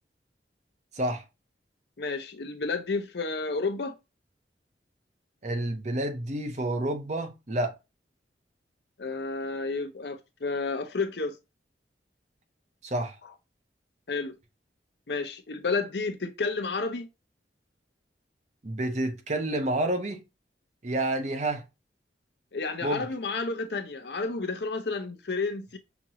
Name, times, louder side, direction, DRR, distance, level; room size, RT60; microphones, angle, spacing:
voice 1, 0.9-1.2 5.4-7.7 12.8-13.2 18.6-20.2 20.8-21.6 22.8-23.1, right 1 dB, 40° right, 0.7 m, -29 dB
voice 2, 2.0-3.9 9.0-11.4 14.1-14.4 15.1-17.1 22.5-25.8, left 4 dB, 70° left, 0.7 m, -31 dB
5.9 x 2.6 x 2.8 m
head